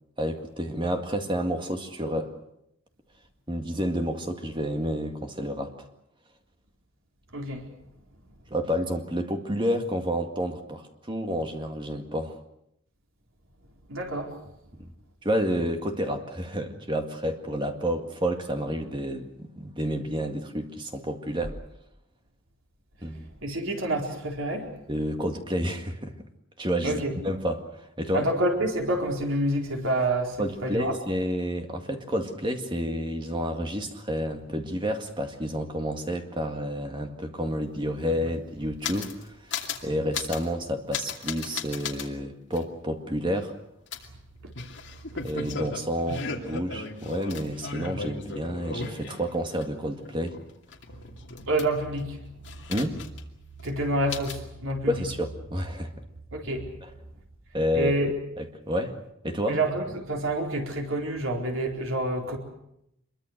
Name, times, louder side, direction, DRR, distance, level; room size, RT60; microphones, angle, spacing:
voice 1, 0.2-2.3 3.5-5.8 8.5-12.4 14.7-14.9 15.2-21.6 23.0-23.3 24.9-26.1 26.6-27.7 28.0-28.3 30.4-43.5 45.2-50.4 52.7-53.0 54.9-55.9 56.8-56.9 57.5-57.9 58.4-59.6, equal, 25° right, 5 dB, 2.0 m, -30 dB
voice 2, 7.3-7.6 13.9-14.3 23.4-24.7 26.8-27.1 28.1-31.0 51.5-52.6 53.6-55.0 56.3-56.7 57.7-58.1 59.5-62.4, right 1 dB, 80° right, 1 dB, 4.4 m, -28 dB
sound 1, 37.5-37.6 37.8-39.2 39.5-39.8 40.1-40.5 40.9-42.1 42.5-42.6 43.9-49.6 50.0-52.0 52.4-53.3 53.6-53.7 54.1-54.4, left 5 dB, 60° left, 2.6 m, -36 dB
25.5 x 23.0 x 6.6 m, 0.79 s
head